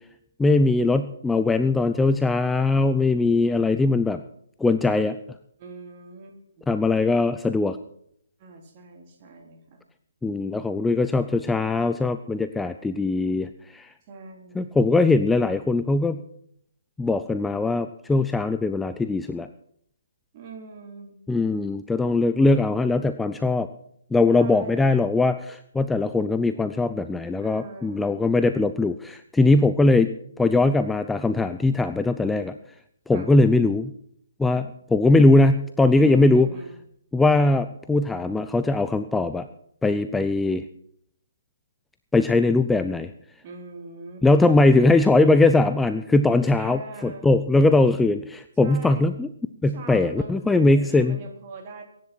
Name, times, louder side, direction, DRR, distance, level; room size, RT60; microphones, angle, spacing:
voice 1, 0.4-4.2 4.6-5.2 6.7-7.8 10.2-13.9 14.5-16.2 17.0-19.5 21.3-23.7 24.1-30.1 30.4-32.6 33.1-33.9 34.4-36.5 37.1-39.5 39.8-40.6 42.1-43.1 44.2-49.3 49.6-51.2, left 2 dB, 5° left, 10 dB, 0.5 m, -20 dB
voice 2, 5.6-6.7 8.4-9.8 14.1-14.8 20.3-21.2 24.3-25.0 27.4-28.2 33.1-33.3 35.9-36.8 43.4-44.2 46.6-47.3 48.6-49.1 49.7-51.9, right 3 dB, 30° right, 2 dB, 3.6 m, -41 dB
23.0 x 10.5 x 4.4 m, 0.68 s
figure-of-eight pair, 135°, 0 cm